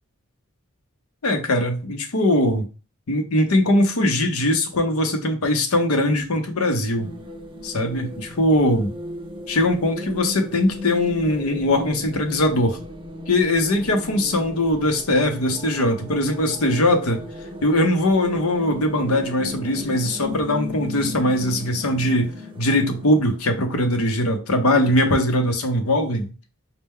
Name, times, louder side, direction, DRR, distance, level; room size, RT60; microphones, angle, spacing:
voice 1, 1.2-2.7 3.1-7.1 7.6-8.9 9.5-12.8 13.3-17.2 17.6-26.3, left 1 dB, 85° left, 0.7 m, -21 dB
sound 1, 7.0-23.4, left 1 dB, 25° right, 0.5 m, -36 dB
4.3 x 2.2 x 3.5 m
head